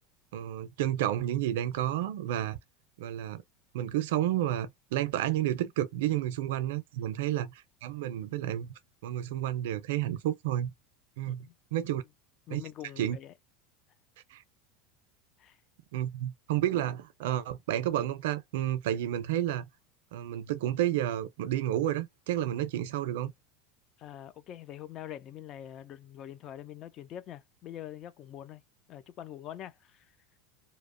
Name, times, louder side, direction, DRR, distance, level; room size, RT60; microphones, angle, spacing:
voice 1, 0.3-2.6 3.0-3.4 3.7-8.7 9.0-10.7 11.2-12.0 12.5-12.6 13.0-13.2 14.3-14.4 15.9-19.6 20.1-23.3, right 12 dB, 80° right, 0.4 m, -31 dB
voice 2, 11.2-11.5 12.5-13.3 15.4-15.6 24.0-28.6 28.9-30.1, left 11 dB, 35° left, 0.3 m, -44 dB
2.8 x 2.0 x 2.4 m
supercardioid pair, 155°, 0 cm